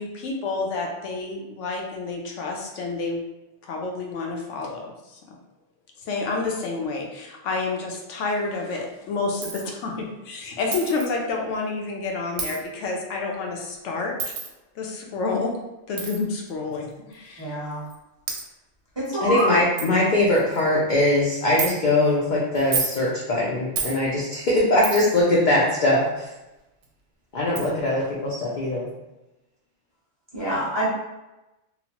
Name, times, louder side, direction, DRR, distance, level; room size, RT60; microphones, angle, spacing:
voice 1, 0.0-3.2 3.6-5.4 6.0-14.4 14.8-15.6 15.9-17.5, left 3 dB, 80° left, 0 dB, 0.9 m, -29 dB
Coin (dropping), 9.4-9.7 10.7-11.1 12.4-12.6 14.2-14.5 16.0-16.2 17.1-17.2 17.9-18.0 18.3-18.4 19.1-19.2 19.4-19.5 19.8-19.9 20.4-20.7 21.6-21.7 22.6-23.0 23.8-24.0 24.8-25.2 26.8-26.9 27.6-27.7, right 5 dB, 75° right, 0.8 m, -29 dB
voice 2, 17.4-17.8 19.0-19.6 30.3-30.8, equal, 25° right, -9 dB, 0.7 m, -26 dB
voice 3, 19.2-26.3 27.3-28.9, left 1 dB, 60° left, -5 dB, 0.5 m, -21 dB
2.9 x 2.0 x 2.8 m, 1.0 s
omnidirectional pair, 1.2 m